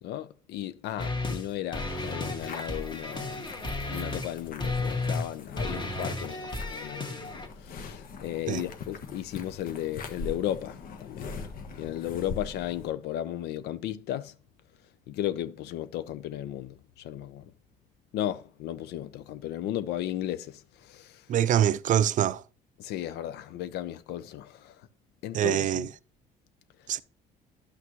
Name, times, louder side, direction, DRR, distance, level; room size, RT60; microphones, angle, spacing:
voice 1, 0.0-3.5 3.9-7.3 7.6-11.3 11.8-14.3 15.1-17.4 18.1-21.2 22.8-24.8 25.2-25.9, left 12 dB, 80° left, 0.7 m, -35 dB
sound 1, 1.0-1.5 1.7-4.3 4.6-5.3 5.6-7.5, left 2 dB, 25° left, 1.8 m, -33 dB
sound 2, 1.8-12.9, left 5 dB, 60° left, 1.3 m, -42 dB
voice 2, 21.3-22.4 25.3-25.9 26.9-27.0, right 10 dB, 50° right, 0.4 m, -24 dB
11.5 x 6.0 x 3.1 m
cardioid pair, 110°, 17 cm